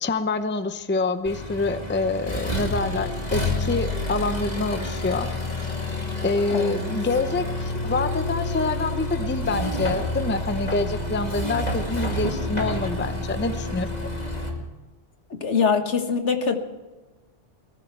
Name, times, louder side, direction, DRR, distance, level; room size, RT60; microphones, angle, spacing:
voice 1, 0.0-5.3 6.2-13.9, left 3 dB, 10° left, 10 dB, 0.6 m, -26 dB
Accelerating revving vroom, 1.3-14.5, left 1 dB, 35° left, 2.5 m, -29 dB
voice 2, 6.5-6.8 15.3-16.6, left 5 dB, 75° left, 6 dB, 1.7 m, -23 dB
20.0 x 14.5 x 4.6 m, 1.2 s
omnidirectional pair, 1.2 m